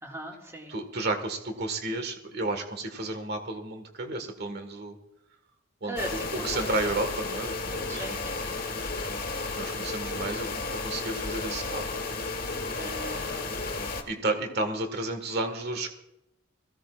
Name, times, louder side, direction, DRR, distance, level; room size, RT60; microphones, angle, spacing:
voice 1, 0.0-0.7 5.8-7.0 7.9-9.1 12.8-13.7, right 1 dB, 15° right, 0 dB, 2.0 m, -40 dB
voice 2, 0.7-5.0 5.8-6.0 6.4-8.1 9.6-12.0 14.1-15.9, right 2 dB, 55° right, 6 dB, 1.7 m, -32 dB
sound 1, 6.0-14.0, left 3 dB, 50° left, 1.6 m, -33 dB
21.0 x 16.0 x 2.5 m, 0.86 s
head